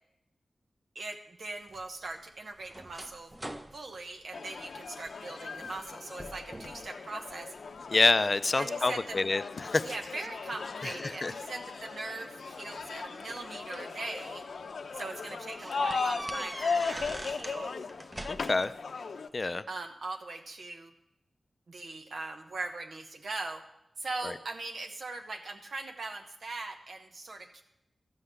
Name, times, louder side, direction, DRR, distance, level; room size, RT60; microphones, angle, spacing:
voice 1, 0.9-3.3 3.7-7.5 8.5-9.3 9.8-14.4 14.9-17.8 19.7-20.9 21.7-23.6 24.0-27.6, right 3 dB, 70° right, 4 dB, 1.0 m, -40 dB
sound 1, 1.7-5.1 5.5-5.9 6.2-6.9 7.3-8.0 8.6-10.1 11.2-11.3 12.6-14.0 14.5-14.6 14.9-15.0 15.6-17.6 17.9-18.7, right 1 dB, 15° right, 0.7 m, -43 dB
sound 2, 4.3-19.3, left 4 dB, 80° left, 0.7 m, -37 dB
voice 2, 7.9-9.8 10.8-11.3 18.3-18.7 19.3-19.6 24.2-24.3, left 3 dB, 40° left, 13 dB, 0.5 m, -27 dB
13.0 x 5.7 x 8.1 m, 0.84 s
wide cardioid pair, 105°, 0 cm